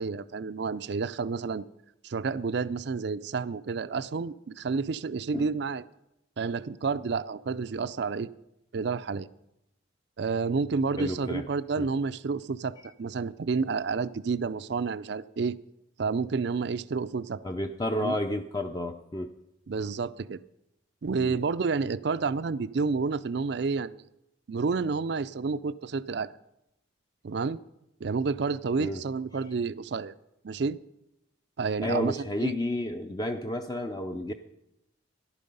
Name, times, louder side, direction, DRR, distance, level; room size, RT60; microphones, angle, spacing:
voice 1, 0.0-1.6 2.0-5.8 6.4-8.3 8.7-9.3 10.2-15.6 16.0-17.4 18.0-18.2 19.7-20.4 21.0-24.0 24.5-26.3 27.2-27.6 28.0-30.1 30.4-30.8 31.6-32.5, right 4 dB, 60° right, 15 dB, 0.4 m, -30 dB
voice 2, 11.0-11.5 11.8-11.9 17.4-19.3 21.2-21.4 28.8-29.0 31.8-34.3, left 1 dB, 20° left, 5 dB, 0.5 m, -31 dB
14.0 x 11.5 x 5.4 m, 0.86 s
head